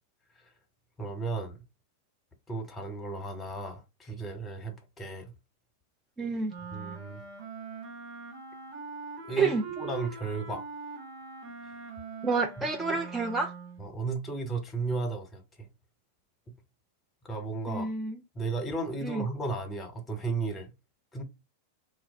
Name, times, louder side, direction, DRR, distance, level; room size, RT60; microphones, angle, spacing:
voice 1, 1.0-1.6 2.5-5.3 6.7-7.2 9.2-10.6 13.8-15.7 17.2-17.9 18.3-20.7 21.1-21.2, right 3 dB, 20° left, 1.1 m, -34 dB
voice 2, 6.2-6.5 9.4-9.6 12.2-13.5 17.7-18.2 19.0-19.3, right 4 dB, 15° right, 0.4 m, -29 dB
Wind instrument woodwind instrument, 6.5-13.9, right 5 dB, 40° right, 1.2 m, -42 dB
2.4 x 2.1 x 3.4 m
figure-of-eight pair, 90°, 0 cm